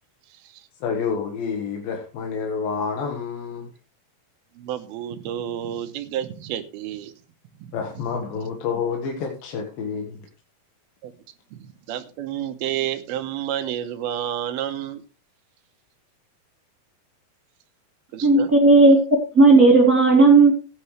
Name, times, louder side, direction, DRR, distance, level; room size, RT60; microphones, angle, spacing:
voice 1, 0.8-3.7 7.7-10.1, left 5 dB, 70° left, 1 dB, 3.2 m, -28 dB
voice 2, 4.6-7.1 7.6-7.7 11.0-11.1 11.5-15.0 18.1-18.5, right 11 dB, 90° right, 9 dB, 2.9 m, -30 dB
voice 3, 18.2-19.0 19.3-20.5, right 3 dB, 25° right, -3 dB, 2.8 m, -13 dB
16.5 x 9.5 x 3.2 m, 0.34 s
omnidirectional pair, 4.3 m